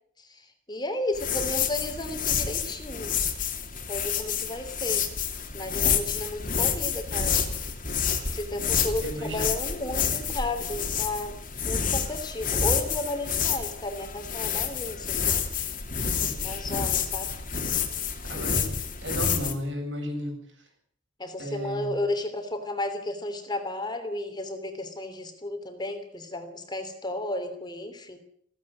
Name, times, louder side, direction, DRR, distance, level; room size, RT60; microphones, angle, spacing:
voice 1, 0.3-3.1 3.9-5.1 5.5-7.4 8.3-11.3 11.7-15.4 16.4-17.3 21.2-28.2, left 1 dB, 25° left, 7 dB, 3.1 m, -33 dB
sound 1, 1.1-19.5, left 7 dB, 45° left, 3.1 m, -29 dB
voice 2, 9.0-9.5 16.1-16.3 18.3-18.7 19.0-20.4 21.4-21.9, equal, 75° right, 2 dB, 8.0 m, -33 dB
16.5 x 16.0 x 9.8 m, 0.63 s
head